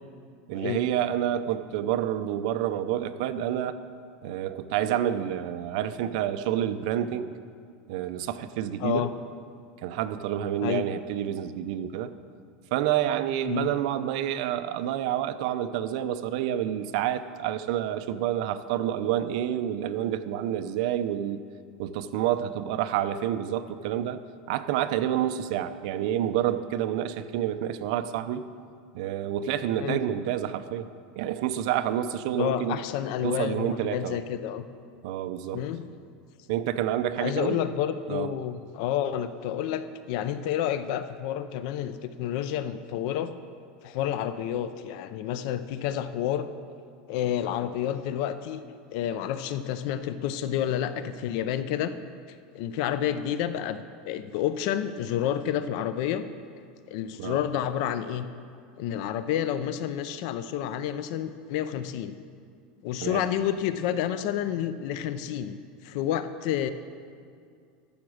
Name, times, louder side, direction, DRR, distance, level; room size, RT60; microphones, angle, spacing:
voice 1, 0.5-3.8 4.2-7.4 7.9-9.0 9.8-12.1 12.7-21.4 21.8-24.2 24.5-28.4 28.9-30.9 31.2-32.8 33.2-34.2 35.0-35.6 36.5-37.6 38.1-38.3 57.2-57.4 63.0-63.2, right 11 dB, 55° right, 11 dB, 0.6 m, -28 dB
voice 2, 8.8-9.1 10.6-10.8 13.5-13.7 29.8-30.0 32.4-34.6 35.5-35.8 37.2-43.3 43.8-46.5 47.1-48.6 48.9-51.9 52.3-56.3 56.9-58.3 58.8-62.2 62.8-65.6 65.8-66.7, left 10 dB, 55° left, 12 dB, 0.5 m, -29 dB
12.0 x 7.1 x 6.4 m, 2.3 s
supercardioid pair, 165°, 4 cm